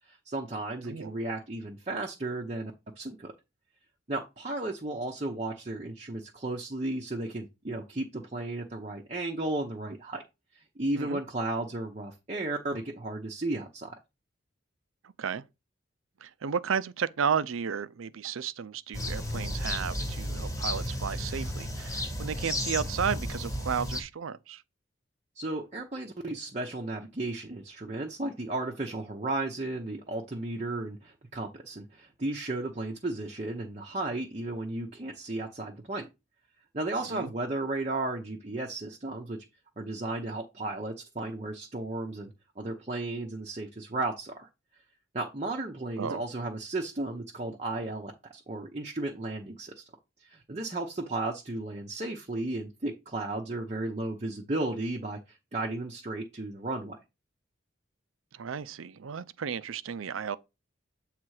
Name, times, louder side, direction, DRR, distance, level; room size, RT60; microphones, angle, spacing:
voice 1, 0.1-2.7 3.0-3.3 4.1-10.2 10.5-14.0 25.4-36.1 36.7-39.4 39.8-44.5 45.1-49.8 50.2-57.0, right 2 dB, 35° right, 0.7 m, -34 dB
voice 2, 15.0-15.4 16.2-24.6 37.1-37.3 46.0-46.2 58.3-60.4, right 7 dB, 90° right, 0.5 m, -33 dB
sound 1, 18.9-24.0, left 1 dB, 15° left, 1.1 m, -33 dB
7.7 x 3.3 x 4.8 m
head